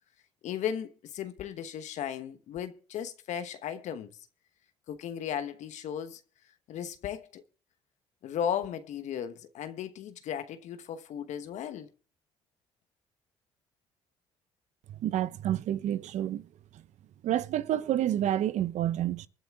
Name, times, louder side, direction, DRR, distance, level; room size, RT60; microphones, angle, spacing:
voice 1, 0.4-4.1 4.9-6.2 6.7-7.4 8.2-11.9, left 9 dB, 65° left, 1.1 m, -36 dB
voice 2, 14.9-16.8 17.2-19.3, right 12 dB, 65° right, 0.9 m, -29 dB
23.0 x 8.9 x 3.6 m
hypercardioid pair, 55°, 13 cm